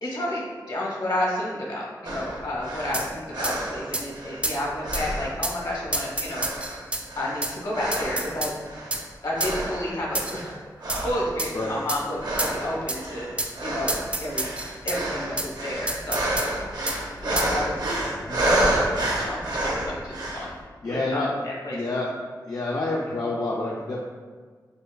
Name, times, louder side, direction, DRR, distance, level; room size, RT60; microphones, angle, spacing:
voice 1, 0.0-6.7 7.2-8.5 9.2-10.6 11.0-14.5 14.8-16.3 17.2-17.8 18.4-21.8, left 1 dB, 70° left, -4 dB, 1.0 m, -31 dB
sound 1, 2.0-4.5 4.8-6.0 6.3-8.4 8.6-9.0 9.3-10.5 10.8-20.5, right 1 dB, 65° right, 0.6 m, -29 dB
sound 2, 2.9-3.1 3.4-3.6 3.9-4.1 4.4-4.6 4.9-5.0 5.4-5.6 5.9-7.0 7.4-7.5 7.9-8.5 8.9-9.0 9.4-9.6 10.1-10.4 10.9-11.0 11.4-11.5 11.9-12.0 12.4-12.6 12.9-13.0 13.4-13.5 13.9-15.0 15.4-15.5 15.9-16.5 16.9-17.0 17.4-17.5, right 1 dB, 15° right, 0.3 m, -29 dB
voice 2, 20.8-21.3 21.7-22.1 22.4-24.0, left 2 dB, 55° left, -3 dB, 0.4 m, -28 dB
5.0 x 2.2 x 2.3 m, 1.5 s
wide cardioid pair, 75°, 8 cm